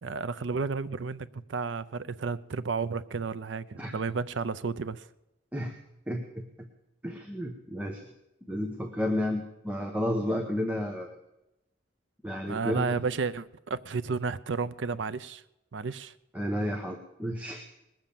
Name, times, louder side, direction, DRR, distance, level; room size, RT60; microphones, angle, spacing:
voice 1, 0.0-5.1 12.5-15.4 15.7-16.1, right 4 dB, 70° right, 0.5 m, -32 dB
voice 2, 6.1-6.4 7.0-8.0 8.5-11.1 12.2-13.0 16.3-17.7, left 1 dB, 5° right, 1.0 m, -31 dB
20.5 x 7.5 x 6.9 m
head